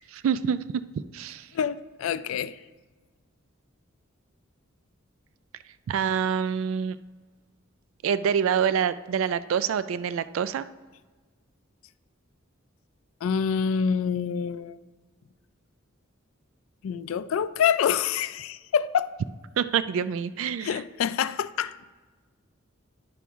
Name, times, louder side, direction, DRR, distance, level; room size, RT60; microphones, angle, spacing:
voice 1, 0.2-0.6 1.1-1.5 5.9-7.0 8.0-10.6 19.6-20.8, right 7 dB, 80° right, 14 dB, 0.3 m, -26 dB
voice 2, 1.5-2.6 13.2-14.8 16.8-19.1 20.6-21.8, left 7 dB, 80° left, 14 dB, 0.3 m, -26 dB
10.5 x 6.0 x 3.5 m, 1.3 s
head